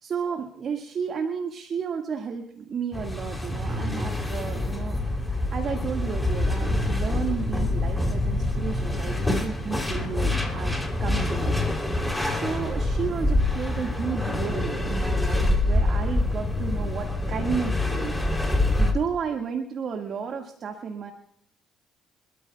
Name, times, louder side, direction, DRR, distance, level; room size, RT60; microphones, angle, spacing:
voice 1, 0.0-5.0 5.5-12.1 12.3-18.2 18.8-21.1, right 6 dB, 55° right, 3 dB, 1.8 m, -32 dB
sound 1, 2.9-18.9, left 2 dB, 10° left, 3.3 m, -26 dB
26.5 x 13.5 x 2.3 m, 0.66 s
supercardioid pair, 65°, 0 cm